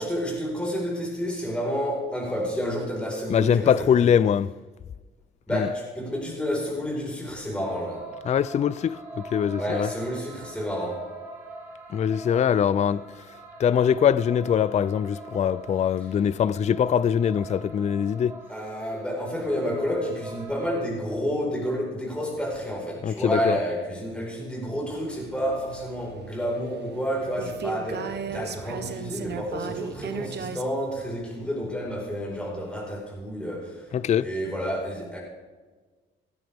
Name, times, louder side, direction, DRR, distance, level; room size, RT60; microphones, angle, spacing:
voice 1, 0.0-4.1 5.5-8.1 9.6-11.1 18.5-35.2, equal, 5° left, 4.7 m, -30 dB
voice 2, 3.3-4.5 5.5-5.7 8.3-9.9 11.9-13.0 13.6-18.4 23.0-23.6 33.9-34.3, left 8 dB, 35° left, 0.4 m, -22 dB
sound 1, 7.6-20.9, right 2 dB, 10° right, 4.8 m, -43 dB
sound 2, 24.9-30.6, right 7 dB, 60° right, 1.1 m, -37 dB
17.5 x 12.5 x 3.6 m
cardioid pair, 90°, 20 cm